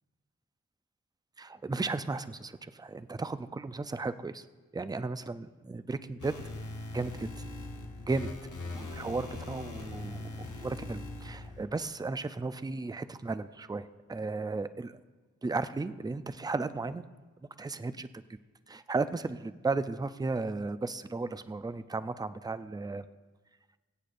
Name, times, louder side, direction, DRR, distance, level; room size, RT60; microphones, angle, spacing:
voice 1, 1.4-4.5 4.7-6.3 6.9-7.4 8.1-8.3 8.6-15.0 15.4-17.0 17.6-18.1 18.7-23.1, right 3 dB, 15° right, 13 dB, 0.4 m, -35 dB
sound 1, 6.2-11.7, left 2 dB, 85° left, 1.2 m, -41 dB
23.5 x 8.4 x 2.5 m, 1.3 s
wide cardioid pair, 65°, 30 cm